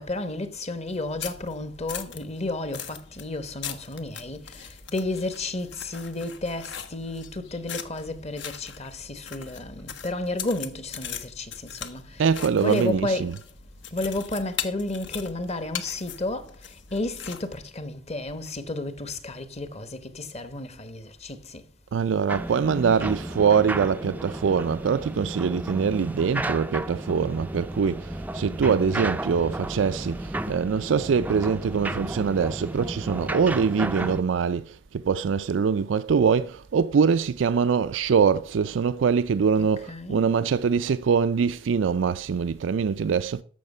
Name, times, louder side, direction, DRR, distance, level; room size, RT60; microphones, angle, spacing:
voice 1, 0.0-13.4 13.9-21.7 39.5-40.2, left 2 dB, 35° left, 1.1 m, -32 dB
sound 1, 0.9-17.5, left 8 dB, 70° left, 1.1 m, -40 dB
voice 2, 12.2-13.4 21.9-43.4, right 6 dB, 80° right, 0.4 m, -23 dB
sound 2, 22.3-34.2, right 1 dB, 10° right, 0.4 m, -33 dB
14.0 x 5.8 x 5.4 m
head